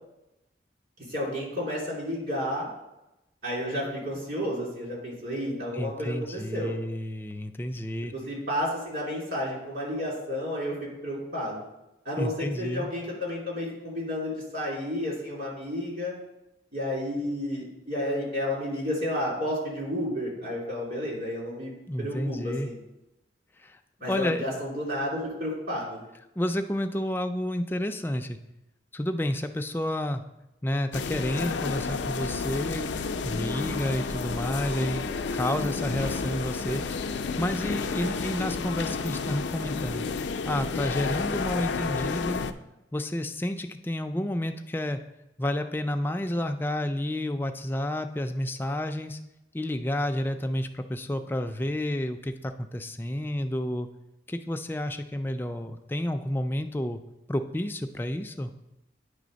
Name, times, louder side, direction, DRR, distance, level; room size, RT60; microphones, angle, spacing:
voice 1, 1.1-2.7 3.4-6.7 8.1-10.8 11.0-11.6 12.0-16.1 16.7-21.7 22.0-22.8 24.0-26.0, left 1 dB, 55° right, -5 dB, 3.0 m, -31 dB
voice 2, 5.7-8.1 12.2-12.9 21.9-22.7 23.6-23.8 24.1-24.4 26.4-28.4 28.9-30.2 30.6-32.9 33.2-35.1 35.3-36.8 37.4-40.1 40.5-42.4 42.9-45.0 45.4-49.2 49.5-53.9 54.3-57.0 57.3-58.5, left 1 dB, 10° left, 6 dB, 0.3 m, -30 dB
sound 1, 30.9-42.5, left 4 dB, 90° left, 0.4 m, -31 dB
9.3 x 3.4 x 5.1 m, 0.93 s
head